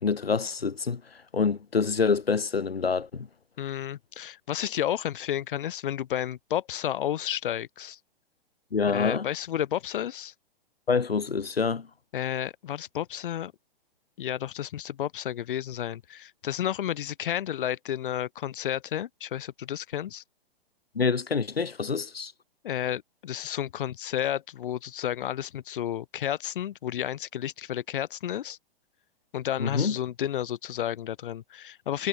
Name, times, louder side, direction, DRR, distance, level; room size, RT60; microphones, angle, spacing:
voice 1, 0.0-1.0 1.3-3.3 8.7-9.3 10.9-11.9 20.9-22.3 29.6-30.0, left 5 dB, 90° left, 2.7 m, -26 dB
voice 2, 3.6-8.0 8.9-10.3 12.1-13.5 14.2-20.2 22.6-28.6 29.3-32.1, left 11 dB, 60° left, 5.7 m, -31 dB
hypercardioid pair, 125°, 29 cm